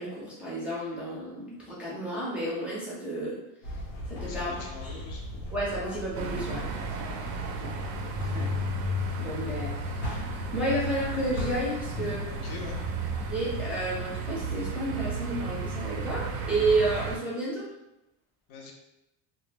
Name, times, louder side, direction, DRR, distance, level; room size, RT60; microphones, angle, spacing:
voice 1, 0.0-3.4 3.7-3.8 4.1-4.6 4.9-5.0 5.5-6.6 7.6-7.7 8.3-8.5 9.2-12.2 13.1-17.7, right 2 dB, 5° right, -8 dB, 0.5 m, -31 dB
sound 1, 3.6-13.4, left 1 dB, 80° left, 0.9 m, -40 dB
voice 2, 4.3-5.4 6.7-6.8 7.3-7.7 11.9-12.8 18.5-18.7, left 4 dB, 60° left, 0 dB, 0.6 m, -42 dB
sound 2, 6.1-17.2, right 2 dB, 70° right, 0.5 m, -33 dB
2.1 x 2.0 x 3.2 m, 0.93 s
cardioid pair, 135°, 41 cm